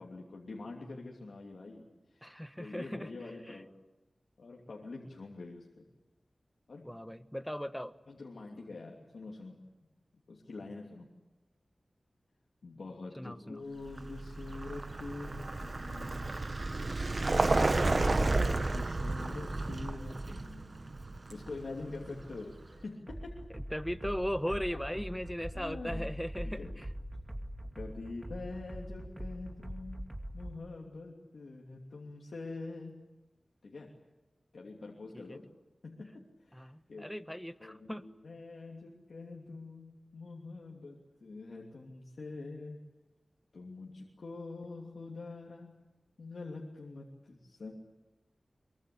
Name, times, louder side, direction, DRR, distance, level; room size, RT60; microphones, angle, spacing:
voice 1, 0.0-1.8 2.1-3.7 4.4-5.9 6.7-7.0 8.1-9.9 10.3-11.2 12.6-16.5 18.1-21.0 21.3-23.4 24.5-24.8 25.5-26.0 26.4-26.7 27.8-30.0 30.3-33.0 33.6-33.9 34.5-35.4 35.8-37.1 37.6-42.8 43.5-47.7, left 3 dB, 85° left, -1 dB, 2.9 m, -45 dB
voice 2, 2.2-3.1 3.5-3.6 6.8-7.9 13.2-13.6 17.6-18.2 22.1-22.2 23.5-26.9 35.1-35.4 36.5-38.1, equal, 5° left, 11 dB, 1.2 m, -38 dB
Vehicle, 13.9-22.7, right 2 dB, 50° right, 1.1 m, -32 dB
sound 1, 23.1-30.6, equal, 25° right, 2.4 m, -42 dB
23.5 x 23.0 x 8.6 m, 1.0 s
wide cardioid pair, 65°, 0 cm